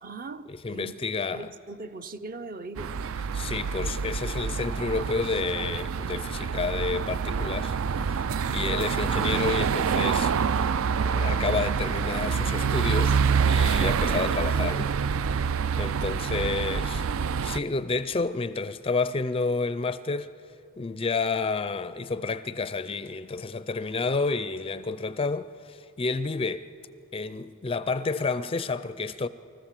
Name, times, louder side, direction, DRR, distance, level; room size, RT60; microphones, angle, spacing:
voice 1, 0.0-1.1 1.3-3.0, right 3 dB, 40° right, 0.7 m, -40 dB
voice 2, 0.6-1.5 3.3-10.7 11.0-14.9 15.8-17.1 17.4-20.3 20.8-26.7 27.1-29.3, left 4 dB, 25° left, 0.4 m, -30 dB
sound 1, 2.8-17.6, right 6 dB, 65° right, 0.4 m, -26 dB
28.5 x 14.5 x 7.5 m
head